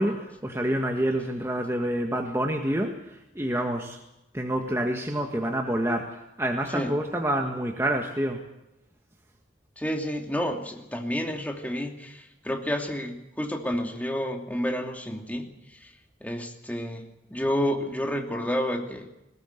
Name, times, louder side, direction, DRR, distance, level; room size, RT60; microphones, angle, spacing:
voice 1, 0.0-3.0 3.4-4.0 4.3-8.4, right 1 dB, 15° right, 2 dB, 1.7 m, -27 dB
voice 2, 9.8-15.9 16.2-19.1, equal, 10° left, 3 dB, 2.7 m, -30 dB
20.5 x 18.0 x 8.1 m, 0.90 s
head